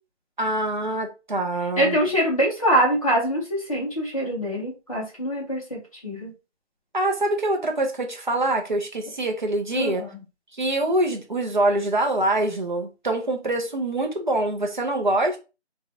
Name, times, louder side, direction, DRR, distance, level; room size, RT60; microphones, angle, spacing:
voice 1, 0.4-2.0 6.9-10.0 10.5-15.4, right 1 dB, 45° right, 0.6 m, -24 dB
voice 2, 1.8-6.3 9.7-10.2, equal, 30° left, 1.0 m, -24 dB
3.1 x 2.3 x 2.6 m
figure-of-eight pair, 175°, 34 cm